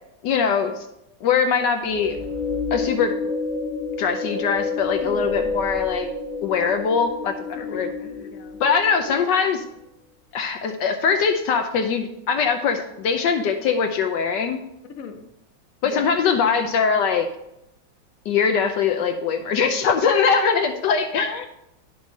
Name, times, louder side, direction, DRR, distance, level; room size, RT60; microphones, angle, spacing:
voice 1, 0.2-0.7 1.2-2.2 2.7-3.2 4.0-6.1 6.4-7.9 8.6-9.6 10.3-14.6 15.8-17.3 18.3-21.5, left 6 dB, 75° left, 6 dB, 1.3 m, -22 dB
sound 1, 1.9-9.2, left 4 dB, 5° right, 2.2 m, -29 dB
voice 2, 5.0-5.5 6.6-6.8 7.5-8.6 9.1-9.3 15.0-15.3 15.8-16.4 20.2-20.7, left 5 dB, 55° left, 5 dB, 1.2 m, -37 dB
11.0 x 6.3 x 4.1 m, 0.84 s
omnidirectional pair, 2.0 m